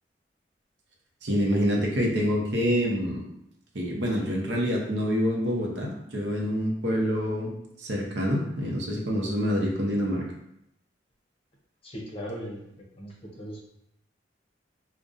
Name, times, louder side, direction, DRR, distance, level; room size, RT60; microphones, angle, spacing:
voice 1, 1.2-3.2 3.7-7.5 7.8-10.2, equal, 70° right, -1 dB, 0.8 m, -26 dB
voice 2, 11.8-12.6 13.0-13.7, equal, 30° left, -2 dB, 0.7 m, -38 dB
5.2 x 2.2 x 2.5 m, 0.79 s
head